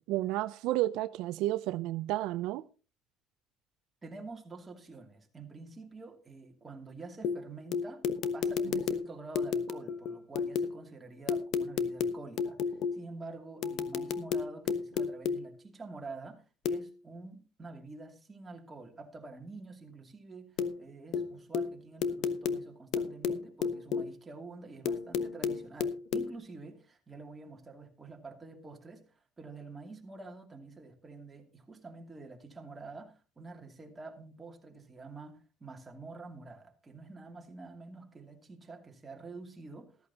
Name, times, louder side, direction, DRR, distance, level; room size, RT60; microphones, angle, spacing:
voice 1, 0.1-2.6, right 16 dB, 80° right, 0.5 m, -31 dB
voice 2, 4.0-8.0 8.3-29.0 29.4-40.1, right 3 dB, 20° right, 2.7 m, -47 dB
sound 1, 7.2-10.8 11.3-13.1 13.6-15.5 16.7-16.9 20.6-20.9 21.1-24.2 24.9-26.3, left 6 dB, 65° left, 1.2 m, -33 dB
14.0 x 14.0 x 2.9 m
cardioid pair, 125°, 0 cm